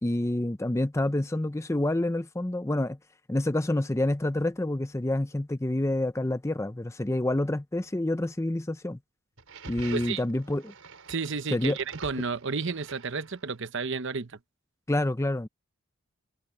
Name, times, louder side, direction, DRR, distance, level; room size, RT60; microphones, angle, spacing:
voice 1, 0.0-3.0 3.3-9.0 9.7-10.7 11.5-11.8 14.9-15.5, left 1 dB, 15° left, 0.5 m, -28 dB
sound 1, 9.4-13.7, right 4 dB, 75° right, 5.0 m, -46 dB
voice 2, 11.1-14.4, right 4 dB, 55° right, 0.9 m, -32 dB
head